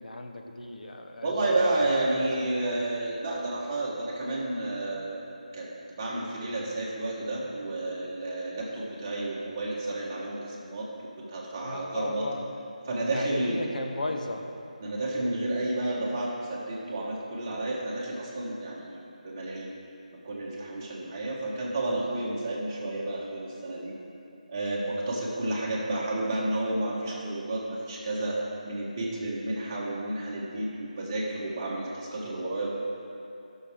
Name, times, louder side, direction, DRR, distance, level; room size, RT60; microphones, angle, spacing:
voice 1, 0.0-1.3 1.8-2.5 11.6-12.5 13.1-14.4 25.2-25.4, left 2 dB, 75° left, 3 dB, 1.0 m, -36 dB
voice 2, 1.2-5.2 5.5-10.9 11.3-12.3 12.9-13.6 14.8-19.7 20.2-23.9 24.5-28.4 28.6-32.7, right 2 dB, 20° right, -6 dB, 1.3 m, -31 dB
15.0 x 6.4 x 3.6 m, 2.7 s
figure-of-eight pair, 175°, 4 cm